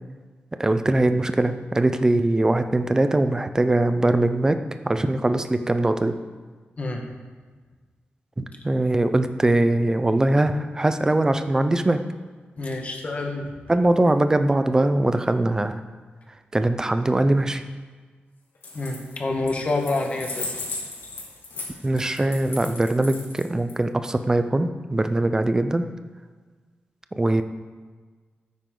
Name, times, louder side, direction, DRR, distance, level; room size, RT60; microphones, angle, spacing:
voice 1, 0.6-4.6 4.8-6.2 8.4-12.0 13.7-15.8 16.5-17.6 21.8-25.9 27.1-27.4, right 2 dB, 15° right, 9 dB, 0.6 m, -21 dB
voice 2, 6.8-7.1 12.6-13.5 18.7-20.5, left 2 dB, 35° left, 2 dB, 1.5 m, -27 dB
sound 1, 18.5-19.1 19.5-23.7, left 3 dB, 75° left, 4.0 m, -35 dB
13.0 x 9.4 x 3.9 m, 1.5 s
wide cardioid pair, 140°, 4 cm